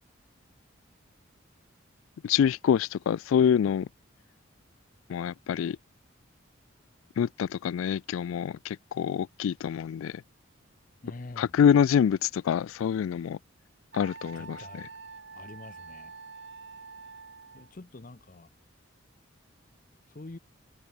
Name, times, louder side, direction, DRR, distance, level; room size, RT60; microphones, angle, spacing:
voice 1, 2.2-3.9 5.1-5.8 7.2-10.2 11.4-13.4 13.9-14.9, left 8 dB, 80° left, 0.3 m, -26 dB
voice 2, 11.0-11.5 14.3-14.9 15.3-16.1 17.5-18.5 20.1-20.4, left 2 dB, 40° left, 0.7 m, -45 dB
Wind instrument woodwind instrument, 13.9-17.7, right 4 dB, 60° right, 1.4 m, -46 dB
head